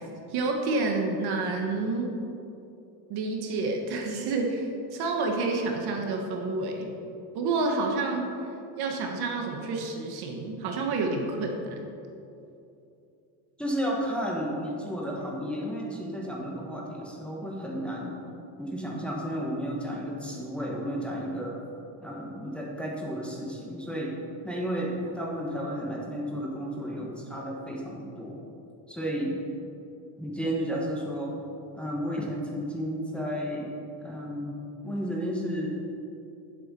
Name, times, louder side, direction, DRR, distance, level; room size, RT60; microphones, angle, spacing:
voice 1, 0.3-2.1 3.1-6.9 7.3-8.3 8.8-11.8, right 3 dB, 50° right, 2 dB, 1.6 m, -29 dB
voice 2, 13.6-18.2 18.6-21.6 22.0-24.2 24.4-28.4 28.9-29.4 30.2-31.3 31.7-33.7 34.0-34.6 34.8-35.7, equal, ahead, -3 dB, 1.4 m, -32 dB
10.5 x 7.8 x 5.4 m, 2.8 s
cardioid pair, 135°, 48 cm